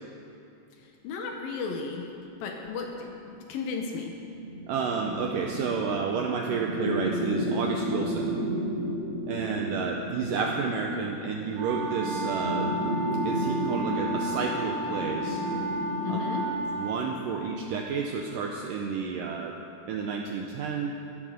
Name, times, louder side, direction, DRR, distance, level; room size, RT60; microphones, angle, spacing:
voice 1, 1.0-2.1 2.4-4.2 16.0-16.5, left 5 dB, 70° left, 2 dB, 2.5 m, -34 dB
sound 1, 4.4-16.8, equal, 65° right, 5.1 m, -33 dB
voice 2, 4.7-8.4 9.3-12.7 13.2-15.4 16.1-16.2 16.8-19.6 19.9-20.9, right 5 dB, 80° right, 1 dB, 2.0 m, -31 dB
sound 2, 11.5-17.0, right 2 dB, 40° right, 3.9 m, -33 dB
14.0 x 11.0 x 6.5 m, 2.7 s
omnidirectional pair, 4.8 m